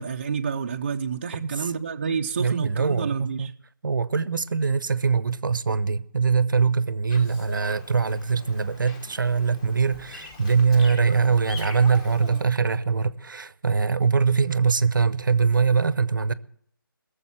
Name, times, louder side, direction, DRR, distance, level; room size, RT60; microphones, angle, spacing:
voice 1, 0.0-3.5, right 6 dB, 30° right, 0.5 m, -29 dB
voice 2, 1.4-1.7 2.0-3.5 3.8-16.3, right 5 dB, 60° right, 0.7 m, -23 dB
Bird vocalization bird call bird song, 7.1-12.4, left 3 dB, 15° left, 1.0 m, -43 dB
19.0 x 7.2 x 7.3 m
figure-of-eight pair, 160°, 12 cm